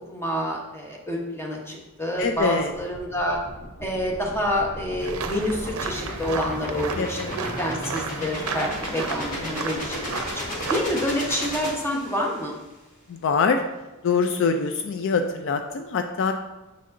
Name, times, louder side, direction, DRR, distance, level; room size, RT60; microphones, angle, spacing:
voice 1, 0.1-3.4 3.8-10.4 10.7-12.5, equal, 10° left, -1 dB, 1.0 m, -28 dB
voice 2, 2.2-2.7 7.0-7.4 9.4-9.8 13.1-13.6 14.0-16.3, left 5 dB, 60° left, 6 dB, 0.4 m, -24 dB
sound 1, 2.2-12.5, equal, 40° left, 1.6 m, -34 dB
Woodland path walk in Spring with nesting rooks, 5.0-10.9, right 5 dB, 65° right, 0.6 m, -34 dB
6.7 x 6.5 x 2.6 m, 1.1 s
head